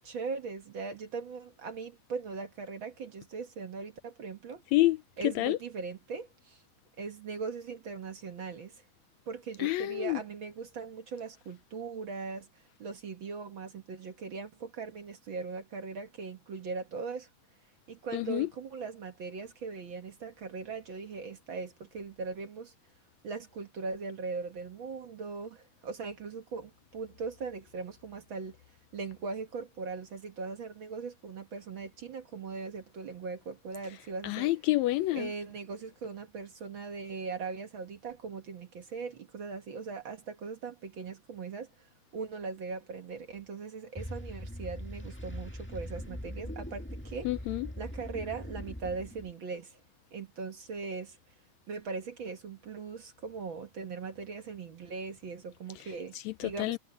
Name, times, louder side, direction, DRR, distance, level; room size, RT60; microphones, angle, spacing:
voice 1, 0.0-4.6 5.2-6.6 7.0-8.8 9.3-12.5 12.8-17.3 17.9-22.7 23.2-28.6 28.9-34.5 35.1-41.7 42.1-47.3 47.8-49.8 50.1-51.2 51.7-56.8, right 4 dB, 50° right, 1.8 m, -40 dB
voice 2, 5.2-5.6 9.6-10.2 18.1-18.5 34.2-35.3 47.2-47.7 56.2-56.8, left 17 dB, 80° left, 1.7 m, -28 dB
sound 1, 44.0-49.3, equal, 5° left, 0.9 m, -41 dB
omnidirectional pair, 3.4 m